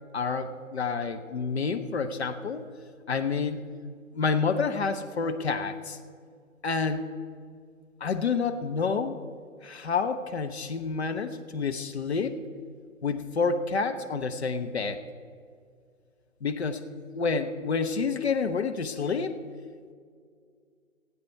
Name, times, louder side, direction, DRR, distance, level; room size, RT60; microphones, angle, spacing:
voice 1, 0.1-2.7 3.1-3.6 4.1-6.0 6.6-7.1 8.0-9.2 9.6-12.4 13.0-15.0 16.4-16.8 17.1-19.4, left 5 dB, 50° left, 8 dB, 0.9 m, -28 dB
18.0 x 8.5 x 4.6 m, 2.2 s
figure-of-eight pair, 135°, 41 cm